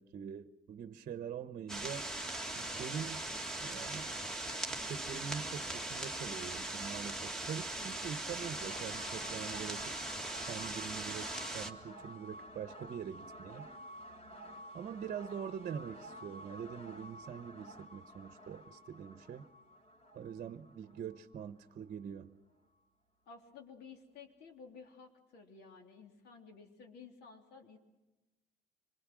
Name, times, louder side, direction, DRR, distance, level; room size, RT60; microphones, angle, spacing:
voice 1, 0.0-2.1 2.5-3.3 3.6-4.2 4.7-10.0 10.4-13.7 14.7-19.5 20.1-22.3, right 8 dB, 50° right, 11 dB, 1.0 m, -44 dB
sound 1, 1.7-11.7, right 1 dB, 5° left, 2.0 m, -40 dB
sound 2, 8.5-22.2, equal, 40° left, 4.8 m, -52 dB
voice 2, 23.3-27.8, left 5 dB, 75° left, 4 dB, 3.4 m, -54 dB
26.0 x 22.0 x 6.3 m, 1.1 s
cardioid pair, 110°, 17 cm